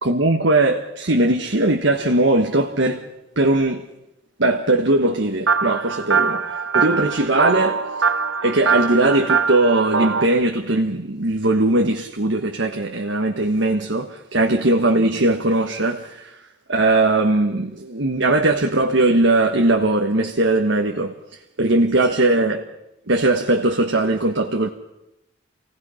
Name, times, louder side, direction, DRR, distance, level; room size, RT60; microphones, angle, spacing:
voice 1, 0.0-3.0 3.4-3.8 4.4-7.9 8.4-16.4 16.7-21.1 21.6-22.7 23.1-24.7, right 2 dB, 70° right, 1.4 m, -19 dB
sound 1, 5.5-10.2, right 5 dB, 90° right, 1.1 m, -22 dB
28.5 x 17.5 x 5.7 m
head